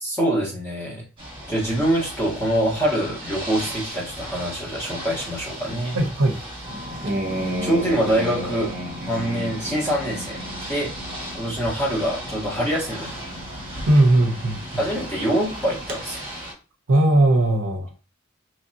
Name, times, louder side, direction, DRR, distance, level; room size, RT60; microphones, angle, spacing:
voice 1, 0.0-1.0 1.5-6.0 6.9-7.2 7.6-8.7 9.1-10.4 10.7-10.9 11.3-13.1 14.8-16.2, right 1 dB, 10° left, 1.1 m, -24 dB
Ocean / Boat Water vehicle, 1.2-16.5, equal, 25° right, 1.2 m, -37 dB
voice 2, 5.9-6.4 13.9-14.8 16.9-17.9, right 1 dB, 75° right, 0.6 m, -18 dB
sound 1, 6.6-16.0, equal, 45° right, 0.8 m, -34 dB
3.2 x 2.5 x 2.7 m
head